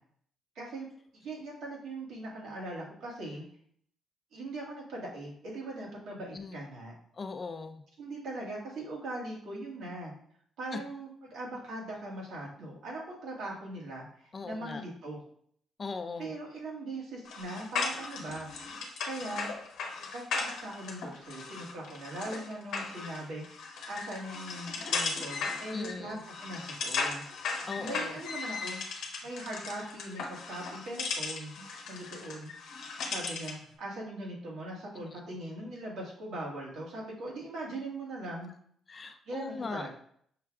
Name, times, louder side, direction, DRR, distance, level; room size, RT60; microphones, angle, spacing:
voice 1, 0.5-0.9 1.1-3.4 4.3-6.9 8.0-10.1 10.6-15.2 16.2-18.7 19.0-19.5 20.1-23.6 23.9-27.2 27.5-28.8 29.2-31.5 31.9-32.5 33.0-38.5 39.3-39.9, right 1 dB, 75° right, -3 dB, 1.5 m, -40 dB
voice 2, 7.1-7.8 10.7-10.8 14.3-14.8 15.8-16.3 25.7-26.2 27.7-28.2 34.9-35.2 38.9-39.9, left 4 dB, 35° left, 8 dB, 0.4 m, -39 dB
sound 1, 17.2-33.6, left 4 dB, 75° left, 0.8 m, -37 dB
5.7 x 2.3 x 3.5 m, 0.63 s
cardioid pair, 90°, 0 cm